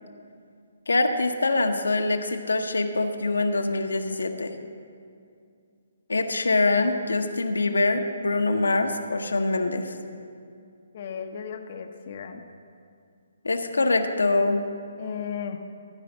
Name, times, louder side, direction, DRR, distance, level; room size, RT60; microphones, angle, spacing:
voice 1, 0.9-4.5 6.1-10.0 13.4-14.6, left 2 dB, 75° left, 5 dB, 0.8 m, -24 dB
voice 2, 10.9-12.4 15.0-15.6, left 7 dB, 45° left, 4 dB, 0.7 m, -35 dB
14.0 x 5.1 x 7.4 m, 2.3 s
figure-of-eight pair, 135°, 0 cm